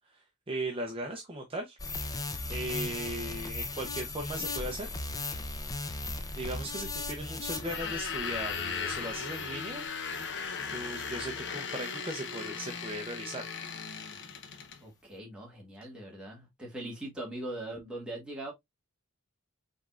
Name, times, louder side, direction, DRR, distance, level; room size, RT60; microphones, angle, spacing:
voice 1, 0.1-1.8 2.5-4.9 6.4-9.9 10.7-13.4, right 1 dB, 25° right, 0.6 m, -38 dB
sound 1, 1.8-10.5 11.0-11.1, left 2 dB, 15° left, 0.5 m, -38 dB
sound 2, 7.6-14.8, left 6 dB, 55° left, 0.8 m, -37 dB
voice 2, 14.8-18.5, right 1 dB, 5° right, 1.7 m, -41 dB
5.2 x 3.6 x 2.3 m
head